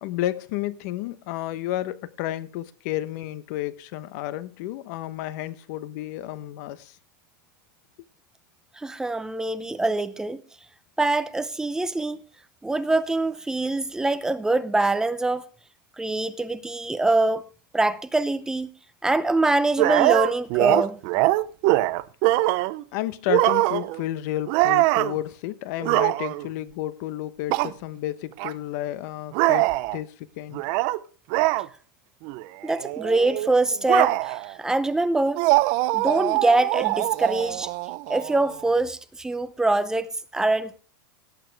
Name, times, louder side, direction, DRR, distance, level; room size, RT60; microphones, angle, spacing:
voice 1, 0.0-7.0 22.9-30.6, left 14 dB, 55° left, 0.9 m, -31 dB
voice 2, 8.8-10.4 11.0-12.2 12.6-15.4 16.0-17.5 17.7-18.7 19.0-21.0 32.6-35.4 35.9-37.7 38.1-40.8, right 2 dB, 5° right, 0.6 m, -24 dB
sound 1, 19.8-22.8 23.3-24.0 24.5-25.2 25.8-26.5 27.5-27.7 28.4-28.5 29.3-30.0 30.5-31.0 31.3-31.7 32.2-32.4 32.7-34.5 35.4-38.7, right 19 dB, 45° right, 0.6 m, -23 dB
18.0 x 8.5 x 3.4 m
supercardioid pair, 150°, 12 cm